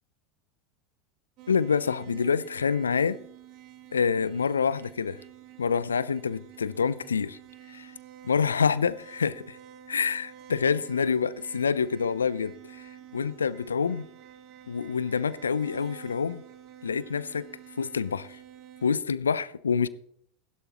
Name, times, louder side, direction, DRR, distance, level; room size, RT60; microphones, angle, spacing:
sound 1, 1.4-19.0, right 11 dB, 50° right, 1.6 m, -49 dB
voice 1, 1.5-3.2 3.9-5.2 5.6-7.4 7.7-7.9 8.2-9.6 9.9-12.5 13.1-14.1 14.7-16.4 16.8-17.5 17.8-18.4 18.8-19.9, left 6 dB, 85° left, 0.4 m, -27 dB
15.5 x 11.5 x 2.9 m
hypercardioid pair, 85°, 0 cm